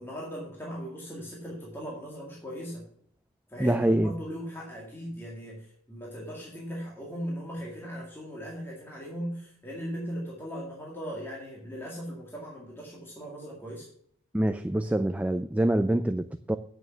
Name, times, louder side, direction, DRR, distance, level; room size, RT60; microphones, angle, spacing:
voice 1, 0.0-2.8 3.5-13.9, equal, 10° left, 2.0 m, -38 dB
voice 2, 3.6-4.1 14.3-16.6, right 1 dB, 5° right, 0.3 m, -25 dB
9.1 x 6.5 x 6.9 m
head